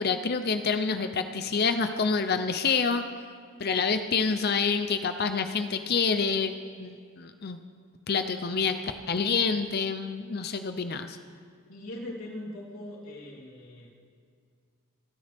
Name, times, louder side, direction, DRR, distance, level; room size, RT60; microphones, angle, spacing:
voice 1, 0.0-3.0 3.6-7.6 8.1-11.2, left 5 dB, 45° left, 8 dB, 0.6 m, -27 dB
voice 2, 11.7-14.0, left 1 dB, 80° left, -3 dB, 3.4 m, -41 dB
28.0 x 10.5 x 3.5 m, 2.2 s
head